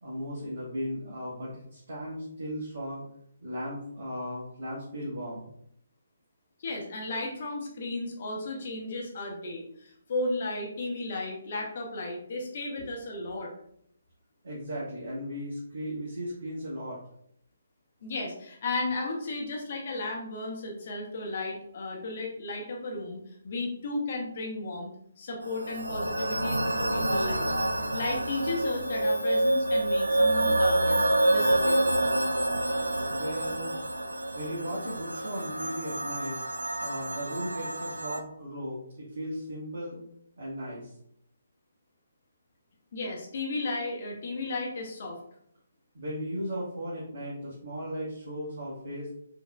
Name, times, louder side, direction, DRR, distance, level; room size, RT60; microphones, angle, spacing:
voice 1, 0.0-3.0 3.4-5.5 14.4-17.0 33.1-33.7 34.3-36.4 36.8-40.0 40.4-40.9 45.9-49.1, equal, 50° right, -6 dB, 1.2 m, -36 dB
voice 2, 6.6-13.5 18.0-27.6 27.9-31.8 42.9-45.2, left 2 dB, 45° left, 0 dB, 0.9 m, -34 dB
sound 1, 25.4-38.2, right 1 dB, 75° right, 0.4 m, -27 dB
5.4 x 2.8 x 2.3 m, 0.69 s
figure-of-eight pair, 135°, 0 cm